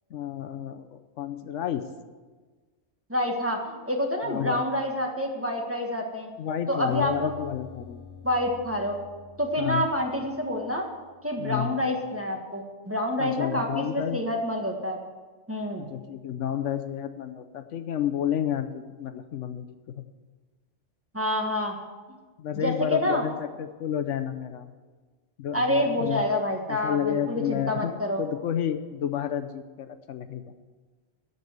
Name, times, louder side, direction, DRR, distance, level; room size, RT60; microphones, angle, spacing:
voice 1, 0.1-1.8 4.2-4.6 6.4-8.1 9.6-9.9 11.4-11.9 13.2-14.2 15.8-19.7 19.9-20.0 22.4-24.7 25.4-26.2 26.7-30.5, left 10 dB, 75° left, 9 dB, 1.0 m, -31 dB
voice 2, 3.1-6.3 6.7-7.3 8.2-9.0 9.4-10.9 11.2-15.0 15.5-15.8 21.1-21.7 22.5-23.2 25.5-28.2, left 1 dB, 10° right, 0 dB, 1.4 m, -27 dB
Acoustic guitar, 6.9-11.0, left 5 dB, 30° right, 3.1 m, -47 dB
14.0 x 5.4 x 8.0 m, 1.4 s
omnidirectional pair, 1.3 m